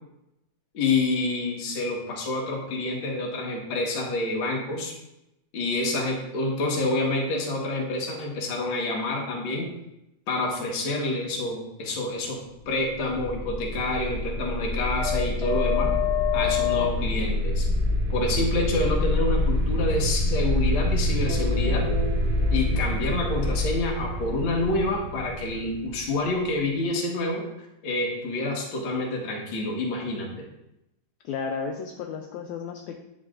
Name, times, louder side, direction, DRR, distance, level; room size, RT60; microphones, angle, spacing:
voice 1, 0.7-4.9 5.5-9.7 10.3-12.4 12.6-15.9 16.3-17.7 18.1-21.8 22.5-27.4 27.8-30.4, left 2 dB, 55° left, -1 dB, 1.6 m, -28 dB
sound 1, 12.9-26.6, left 2 dB, 50° right, 0.7 m, -26 dB
voice 2, 31.2-33.0, left 5 dB, 80° left, 3 dB, 1.7 m, -33 dB
9.6 x 4.9 x 2.5 m, 0.88 s
omnidirectional pair, 3.7 m